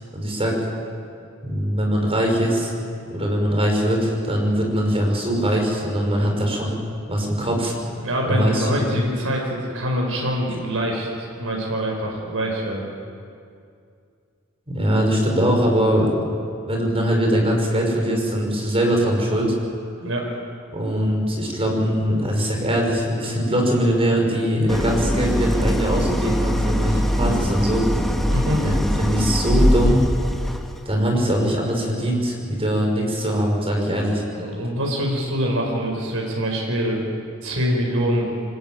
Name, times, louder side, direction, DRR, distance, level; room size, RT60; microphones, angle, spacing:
voice 1, 0.1-0.6 1.4-2.7 3.1-6.8 7.1-7.7 8.3-8.9 14.7-16.3 16.7-19.5 20.7-27.8 28.6-28.7 29.0-30.0 30.9-34.2, equal, 25° right, 1 dB, 5.8 m, -21 dB
voice 2, 8.0-12.8 20.0-20.3 28.3-28.7 34.3-37.0 37.4-38.3, equal, 70° right, 0 dB, 5.1 m, -24 dB
Idling, 24.7-30.8, equal, ahead, 1.7 m, -22 dB
25.0 x 20.0 x 9.1 m, 2.4 s
head